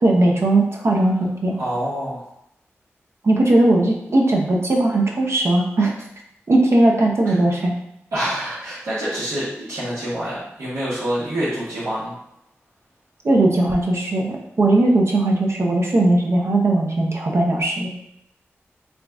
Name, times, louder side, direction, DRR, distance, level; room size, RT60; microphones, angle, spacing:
voice 1, 0.0-1.5 3.2-5.9 6.5-7.7 13.2-17.9, right 2 dB, 65° right, -1 dB, 0.8 m, -18 dB
voice 2, 1.6-2.2 7.2-7.4 8.1-12.1, right 1 dB, 85° right, -12 dB, 1.3 m, -26 dB
3.7 x 2.4 x 3.5 m, 0.78 s
cardioid pair, 45°, 5 cm